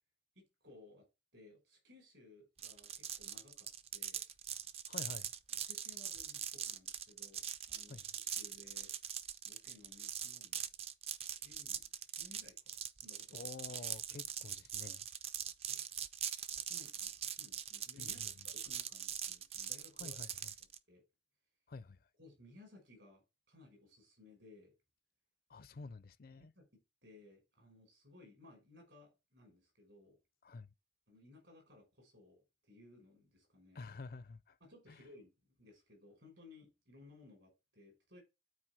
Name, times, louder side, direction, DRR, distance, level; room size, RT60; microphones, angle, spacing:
voice 1, 0.4-1.1 1.3-4.2 5.5-8.9 9.4-10.7 11.4-13.5 15.7-15.8 16.6-18.2 18.4-20.2 20.9-21.0 22.2-24.8 26.3-30.2 31.1-33.8 34.6-38.2, left 2 dB, 70° right, 5.3 m, -61 dB
sound 1, 2.6-20.8, right 9 dB, 30° right, 0.4 m, -42 dB
voice 2, 4.9-5.3 7.9-8.0 13.3-15.1 18.0-18.5 20.0-20.5 21.7-22.1 25.5-26.5 30.4-30.7 33.7-34.6 34.9-35.0, left 3 dB, 50° left, 0.4 m, -50 dB
8.8 x 4.5 x 4.7 m
head